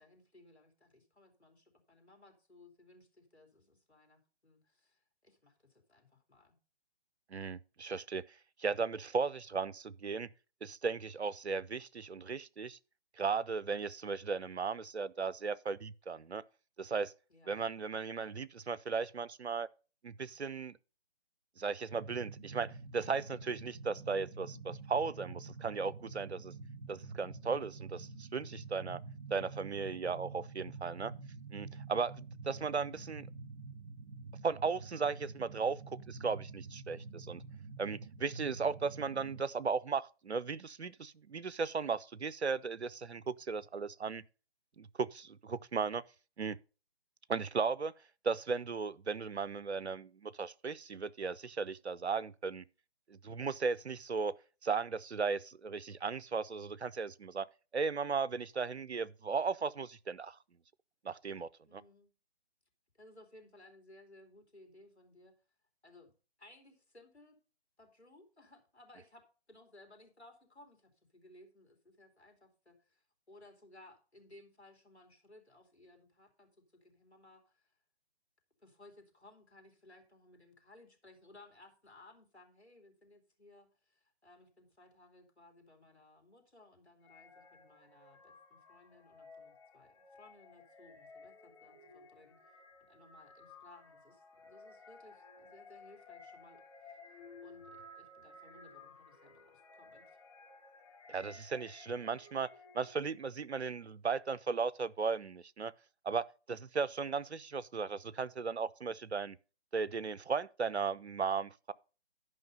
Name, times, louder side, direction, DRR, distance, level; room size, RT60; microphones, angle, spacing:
voice 1, 0.0-6.6 17.3-17.7 61.7-62.1 62.9-65.3 65.8-66.1 66.4-67.4 67.8-76.5 76.8-77.8 78.6-97.6 97.9-100.2, left 2 dB, 80° left, 3.2 m, -61 dB
voice 2, 7.3-8.2 8.6-10.3 10.6-12.8 13.2-16.4 16.8-17.1 17.5-19.7 20.0-20.8 21.6-26.5 26.9-29.0 29.3-31.1 31.5-33.3 34.4-37.4 37.8-44.2 44.8-46.0 46.4-46.6 47.3-47.9 48.2-52.6 53.1-54.3 54.6-57.5 57.7-60.4 61.0-61.8 101.1-105.7 106.0-109.4 109.7-111.7, right 5 dB, 85° right, 0.6 m, -36 dB
sound 1, 21.9-39.4, right 4 dB, 45° right, 6.8 m, -47 dB
sound 2, 87.0-103.2, left 3 dB, 30° left, 2.6 m, -56 dB
11.0 x 5.5 x 5.4 m
figure-of-eight pair, 145°, 32 cm